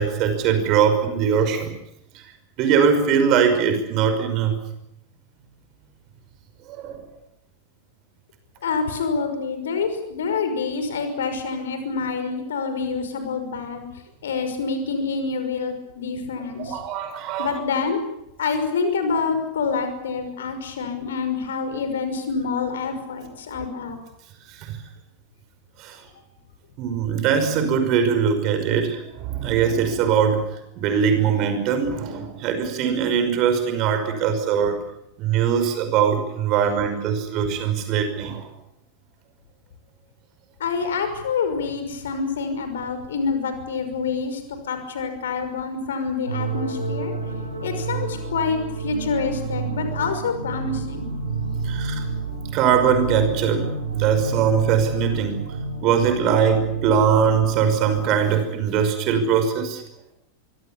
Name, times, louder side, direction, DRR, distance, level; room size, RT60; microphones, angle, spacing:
voice 1, 0.0-1.7 2.6-4.6 6.8-7.0 16.6-17.6 24.6-24.8 25.8-26.0 26.8-30.4 30.8-34.8 35.2-38.4 51.6-52.0 52.5-55.5 55.8-59.8, right 7 dB, 40° right, 9 dB, 5.6 m, -21 dB
voice 2, 8.6-13.9 14.2-16.8 17.4-18.0 18.4-24.0 40.6-44.4 44.7-47.1 47.6-51.1, left 5 dB, 65° left, 8 dB, 5.8 m, -27 dB
sound 1, 46.3-57.9, right 4 dB, 80° right, 5.8 m, -29 dB
25.0 x 24.5 x 7.1 m, 0.82 s
figure-of-eight pair, 90°, 0 cm